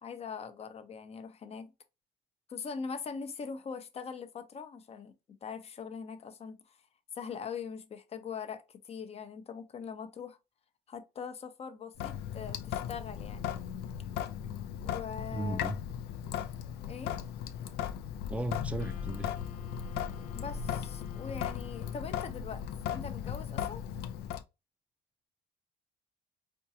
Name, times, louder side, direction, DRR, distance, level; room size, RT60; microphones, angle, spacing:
voice 1, 0.0-1.7 2.5-5.1 5.4-6.8 7.1-10.4 10.9-13.5 14.8-15.7 16.8-17.2 20.3-22.6 22.9-23.8, left 6 dB, 35° left, 0.7 m, -42 dB
Sink (filling or washing) / Drip, 12.0-24.4, left 9 dB, 80° left, 0.5 m, -37 dB
voice 2, 15.3-15.8 18.3-19.3, right 1 dB, 10° right, 0.5 m, -35 dB
Wind instrument woodwind instrument, 18.8-22.6, left 7 dB, 60° left, 0.9 m, -55 dB
4.4 x 2.3 x 2.8 m
cardioid pair, 110°, 17 cm